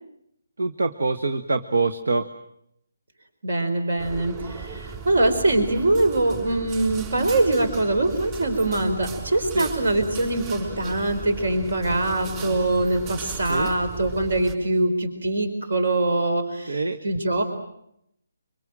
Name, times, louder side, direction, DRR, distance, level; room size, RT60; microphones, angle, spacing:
voice 1, 0.6-2.3 9.5-9.7 13.5-13.7 16.7-17.0, right 3 dB, 85° right, 9 dB, 1.7 m, -24 dB
voice 2, 3.4-17.4, right 2 dB, 65° right, 7 dB, 4.4 m, -23 dB
sound 1, 4.0-14.5, right 5 dB, 20° right, 6.0 m, -37 dB
25.5 x 24.5 x 7.7 m, 0.76 s
hypercardioid pair, 170°, 0 cm